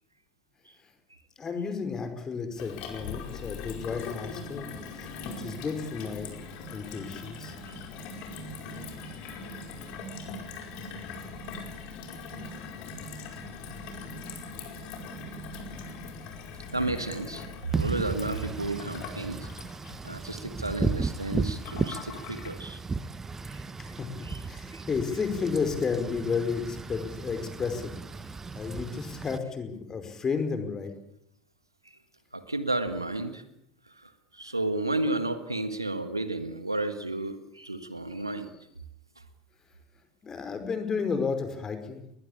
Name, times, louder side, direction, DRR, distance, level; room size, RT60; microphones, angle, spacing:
voice 1, 1.4-4.7 5.0-6.3 6.7-7.5 23.8-24.1 24.4-27.9 28.5-30.9 40.2-42.0, left 5 dB, 25° left, 8 dB, 5.1 m, -32 dB
Gurgling / Water tap faucet / Sink (filling or washing), 2.6-22.5, left 4 dB, 50° left, 5.0 m, -41 dB
voice 2, 16.7-19.5 20.0-22.8 23.5-23.6 24.2-24.4 24.7-24.8 32.3-33.4 34.0-38.5, right 2 dB, 85° right, 11 dB, 1.6 m, -32 dB
Wind / Rain, 17.7-29.4, right 4 dB, 20° right, 1.3 m, -35 dB
21.0 x 21.0 x 8.7 m, 0.73 s
figure-of-eight pair, 70°, 2 cm